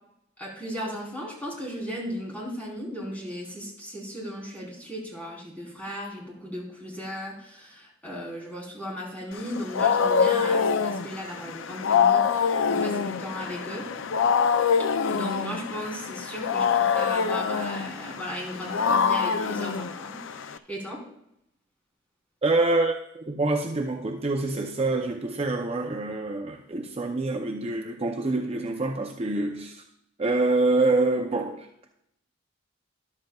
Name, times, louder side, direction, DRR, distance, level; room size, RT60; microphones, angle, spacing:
voice 1, 0.4-13.9 15.1-21.0, equal, 10° left, 3.6 m, -36 dB
Wild animals, 9.4-20.6, left 6 dB, 75° left, 0.5 m, -25 dB
voice 2, 22.4-29.8 30.2-31.9, right 2 dB, 30° right, 0.6 m, -26 dB
13.0 x 11.5 x 2.4 m
head